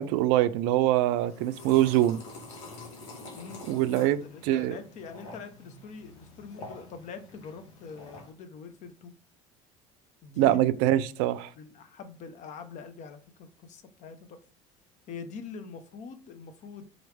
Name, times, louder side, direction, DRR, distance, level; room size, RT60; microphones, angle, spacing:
voice 1, 0.0-2.2 3.7-4.2 4.5-4.7 10.4-11.5, right 14 dB, 75° right, 0.4 m, -24 dB
sound 1, 1.2-8.3, left 2 dB, 85° left, 1.3 m, -47 dB
voice 2, 3.3-9.1 10.2-10.6 11.6-14.4 15.1-16.8, left 5 dB, 55° left, 0.8 m, -44 dB
3.9 x 3.1 x 3.3 m
supercardioid pair, 90°, 15 cm